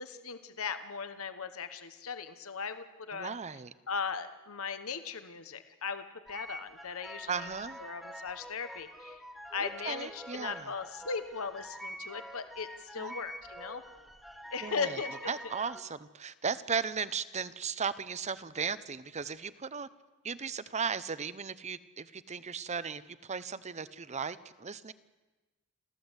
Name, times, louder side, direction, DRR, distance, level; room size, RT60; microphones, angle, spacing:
voice 1, 0.0-3.4 3.9-7.5 7.8-9.2 9.5-13.8 14.5-15.2, left 5 dB, 70° left, 10 dB, 1.2 m, -38 dB
voice 2, 3.1-3.7 7.3-7.8 9.6-10.7 13.0-13.1 14.6-15.0 15.3-19.9 20.2-24.9, right 6 dB, 30° right, 15 dB, 0.8 m, -36 dB
sound 1, 6.3-15.8, equal, ahead, 1.8 m, -46 dB
28.5 x 14.5 x 8.2 m, 1.2 s
head